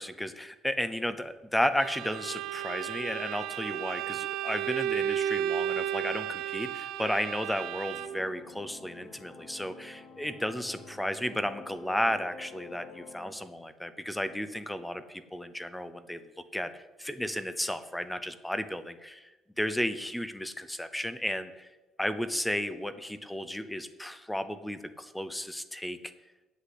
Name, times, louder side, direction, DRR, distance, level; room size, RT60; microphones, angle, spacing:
voice 1, 0.0-16.2 16.5-19.3 19.6-21.7 22.0-26.0, left 1 dB, 5° left, 12 dB, 0.6 m, -33 dB
Bowed string instrument, 1.8-8.3, right 10 dB, 80° right, 0.6 m, -33 dB
sound 1, 8.0-13.3, left 4 dB, 85° left, 4.4 m, -49 dB
8.2 x 8.0 x 8.4 m, 1.1 s
cardioid pair, 160°, 0 cm